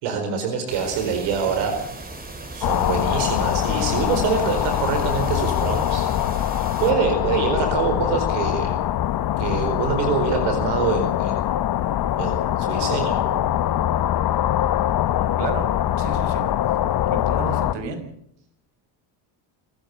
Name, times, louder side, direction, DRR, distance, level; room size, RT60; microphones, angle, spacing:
voice 1, 0.0-1.7 2.5-6.0 6.8-8.8 9.4-11.5 12.2-13.4, right 6 dB, 80° right, 6 dB, 4.6 m, -25 dB
sound 1, 0.7-6.9, right 2 dB, 20° right, 4.1 m, -37 dB
sound 2, 2.6-17.7, left 12 dB, 50° left, 1.3 m, -23 dB
voice 2, 16.0-16.5 17.1-18.1, right 4 dB, 60° right, 7 dB, 5.7 m, -31 dB
26.5 x 14.5 x 6.9 m, 0.75 s
cardioid pair, 115°, 47 cm